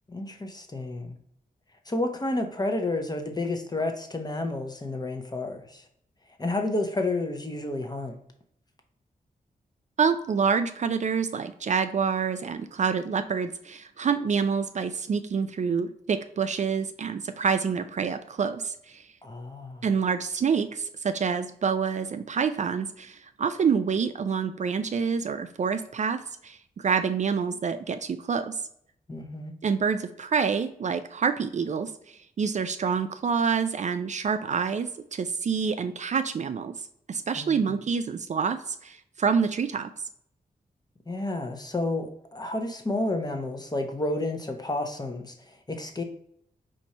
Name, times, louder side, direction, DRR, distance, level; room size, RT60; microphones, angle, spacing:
voice 1, 0.1-1.2 1.9-5.8 6.4-8.2 19.2-19.8 29.1-29.6 37.4-37.8 41.1-46.0, left 2 dB, 25° left, 5 dB, 0.8 m, -31 dB
voice 2, 10.0-19.0 19.8-28.6 29.6-36.7 37.1-39.9, right 6 dB, 50° right, 9 dB, 0.4 m, -27 dB
4.6 x 2.6 x 4.2 m, 0.67 s
cardioid pair, 65°, 16 cm